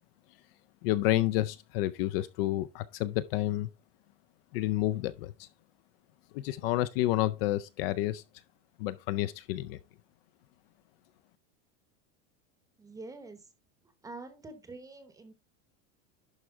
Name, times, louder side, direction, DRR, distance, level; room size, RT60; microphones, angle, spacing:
voice 1, 0.8-3.7 4.5-5.5 6.3-8.2 8.8-9.8, left 15 dB, 50° left, 0.5 m, -30 dB
voice 2, 12.8-13.5 14.0-15.3, right 3 dB, 10° right, 0.9 m, -46 dB
11.5 x 4.6 x 3.5 m
supercardioid pair, 160°, 38 cm